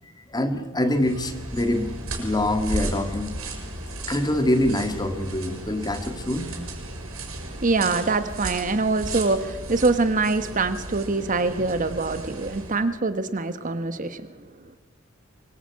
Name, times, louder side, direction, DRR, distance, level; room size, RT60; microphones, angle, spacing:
voice 1, 0.3-3.4 4.0-6.5, left 1 dB, 20° left, 7 dB, 2.0 m, -25 dB
sound 1, 0.9-12.8, right 2 dB, 90° right, 6.7 m, -35 dB
voice 2, 7.6-14.2, right 3 dB, 40° right, 11 dB, 1.2 m, -24 dB
24.5 x 22.0 x 8.4 m, 1.2 s
head